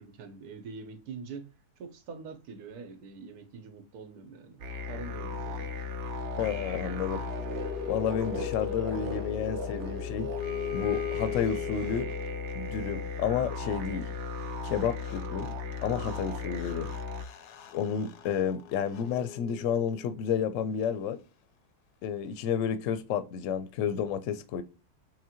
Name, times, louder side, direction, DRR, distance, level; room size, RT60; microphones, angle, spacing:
voice 1, 0.0-1.5 1.8-5.7, right 5 dB, 80° right, 1.3 m, -44 dB
sound 1, 4.6-17.2, left 3 dB, 60° right, 0.8 m, -36 dB
voice 2, 6.4-7.2 7.9-10.3 10.7-12.1 12.5-14.1 14.6-15.5 15.8-16.9 17.7-21.2 22.0-24.6, left 8 dB, 65° left, 0.9 m, -31 dB
sound 2, 7.1-12.5 14.4-14.5 14.7-20.2, left 10 dB, 90° left, 1.1 m, -40 dB
5.9 x 2.2 x 2.8 m
omnidirectional pair, 1.6 m